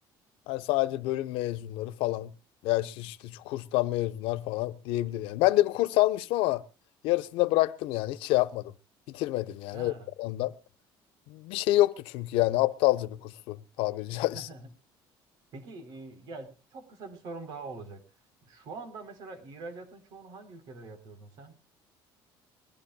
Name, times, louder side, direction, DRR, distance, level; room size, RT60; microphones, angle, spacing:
voice 1, 0.5-2.3 2.6-6.6 7.0-8.7 9.1-9.9 10.2-10.5 11.3-14.5, left 17 dB, 90° left, 1.1 m, -27 dB
voice 2, 9.7-10.1 14.3-14.7 15.5-18.0 18.4-21.6, right 3 dB, 55° right, 3.9 m, -44 dB
22.0 x 15.0 x 2.4 m
cardioid pair, 180°, 9 cm